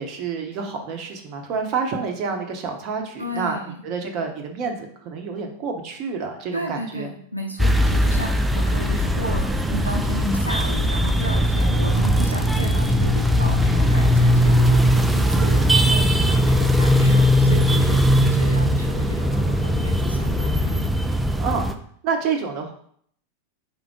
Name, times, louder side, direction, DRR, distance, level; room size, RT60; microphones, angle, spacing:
voice 1, 0.0-3.6 3.8-7.1 21.4-21.7 22.0-22.7, right 5 dB, 40° right, 3 dB, 0.7 m, -28 dB
voice 2, 3.2-3.8 6.5-20.9, equal, 85° right, 2 dB, 0.5 m, -33 dB
sound 1, 7.6-21.7, equal, 5° right, 0.3 m, -19 dB
3.8 x 3.5 x 3.5 m, 0.63 s
figure-of-eight pair, 90°, 0 cm